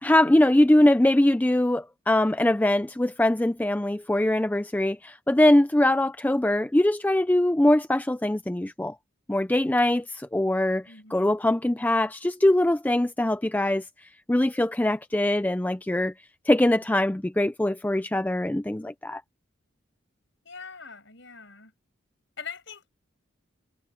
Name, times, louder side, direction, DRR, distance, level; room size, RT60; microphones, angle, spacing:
voice 1, 0.0-8.9 9.3-10.8 11.1-13.9 14.3-16.1 16.5-19.2, left 1 dB, 10° left, 0.4 m, -22 dB
voice 2, 10.9-11.4 20.4-21.7 22.4-22.9, left 6 dB, 70° left, 5.8 m, -42 dB
head